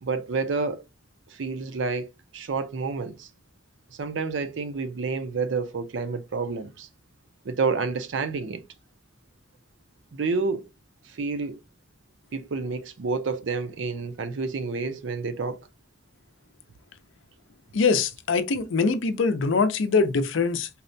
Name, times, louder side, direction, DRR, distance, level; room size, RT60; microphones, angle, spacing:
voice 1, 0.0-0.8 1.3-3.3 4.0-6.9 7.4-8.6 10.1-10.7 11.1-11.6 12.3-15.7, right 4 dB, 70° right, 0.5 m, -29 dB
voice 2, 17.7-20.7, left 4 dB, 75° left, 0.5 m, -23 dB
4.0 x 2.1 x 2.5 m
head